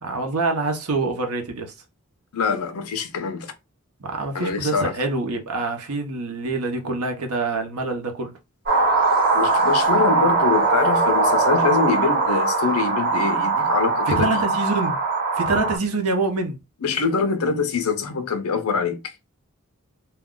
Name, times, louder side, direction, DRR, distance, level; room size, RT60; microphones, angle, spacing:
voice 1, 0.0-1.7 4.0-8.3 14.1-15.0 15.3-16.6, right 3 dB, 85° right, 0.8 m, -25 dB
voice 2, 2.3-3.5 4.3-4.9 9.3-14.4 16.8-19.1, left 5 dB, 75° left, 0.6 m, -24 dB
sound 1, 8.7-15.8, right 3 dB, 45° right, 1.1 m, -20 dB
2.4 x 2.2 x 3.6 m
head